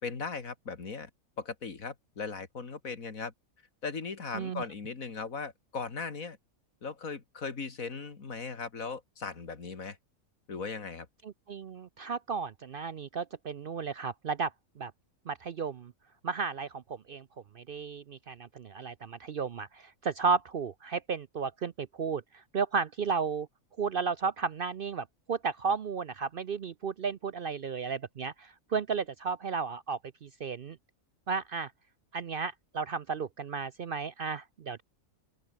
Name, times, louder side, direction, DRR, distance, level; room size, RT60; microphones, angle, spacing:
voice 1, 0.0-1.1 1.4-3.3 3.8-6.4 6.8-10.0 10.5-11.1, left 5 dB, 75° left, 2.7 m, -38 dB
voice 2, 11.2-14.9 15.3-15.9 16.2-17.2 17.5-23.5 23.8-30.8 31.3-31.7 32.1-34.8, right 5 dB, 55° right, 0.7 m, -34 dB
open air
omnidirectional pair, 1.4 m